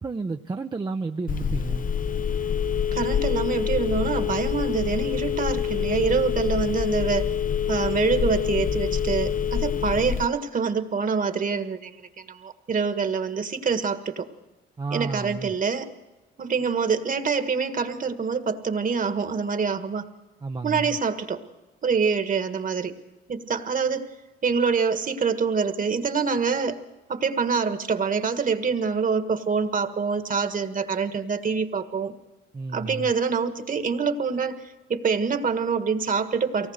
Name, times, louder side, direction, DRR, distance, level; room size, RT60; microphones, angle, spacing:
voice 1, 0.0-1.9 14.8-15.5 20.4-21.0 32.5-33.1, right 4 dB, 20° right, 5 dB, 0.7 m, -31 dB
Telephone, 1.3-10.3, left 8 dB, 45° left, 0.8 m, -26 dB
voice 2, 2.9-7.3 7.7-14.3 14.9-15.9 16.4-20.0 20.6-21.4 21.8-22.9 23.3-24.1 24.4-26.8 27.1-32.1 32.7-34.6 34.9-36.7, right 5 dB, 45° right, 8 dB, 1.7 m, -25 dB
24.0 x 18.5 x 6.6 m, 1.1 s
cardioid pair, 90°, 20 cm